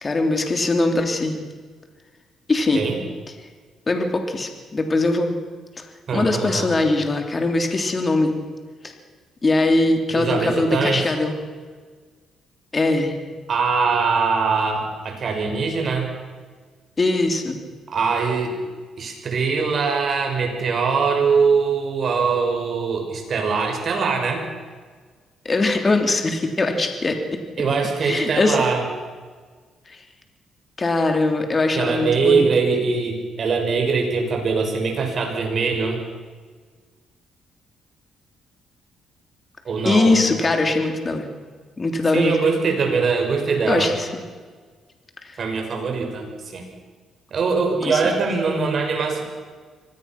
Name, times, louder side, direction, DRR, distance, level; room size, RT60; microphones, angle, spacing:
voice 1, 0.0-1.4 2.5-2.8 3.9-5.4 5.8-5.9 6.1-8.4 8.8-8.9 9.4-11.4 12.7-13.1 17.0-17.6 25.4-27.4 28.0-28.6 29.9-30.0 30.8-32.5 39.8-41.3 41.8-42.4 43.7-44.1 47.8-48.0, left 2 dB, 30° left, 4 dB, 3.2 m, -21 dB
voice 2, 6.1-6.7 10.1-11.1 13.5-16.1 17.9-18.5 19.0-24.4 27.6-28.9 31.7-36.0 39.6-40.2 42.1-43.9 45.4-46.7 47.3-49.2, right 5 dB, 50° right, 2 dB, 6.0 m, -22 dB
25.0 x 19.0 x 6.1 m, 1.5 s
cardioid pair, 90°, 0 cm